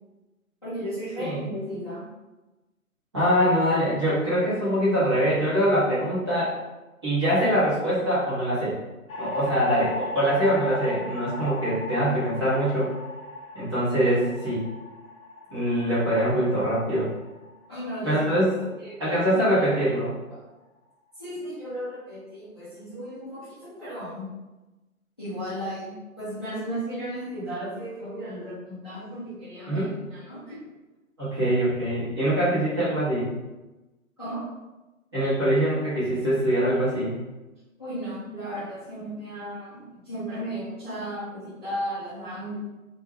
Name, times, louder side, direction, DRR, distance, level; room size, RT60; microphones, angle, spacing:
voice 1, 0.6-2.1 17.7-18.3 18.8-19.9 20.3-20.4 21.2-24.3 25.2-30.6 34.2-34.5 37.8-42.6, equal, 20° left, -15 dB, 0.5 m, -35 dB
voice 2, 3.1-6.6 7.0-8.8 9.2-12.9 13.5-14.6 15.5-17.1 18.0-18.5 19.0-20.1 29.7-29.9 31.2-33.3 35.1-37.2, equal, 20° right, -12 dB, 0.7 m, -23 dB
sound 1, 9.1-19.4, left 1 dB, 80° left, 0.8 m, -38 dB
2.2 x 2.2 x 3.2 m, 1.1 s
figure-of-eight pair, 145°, 43 cm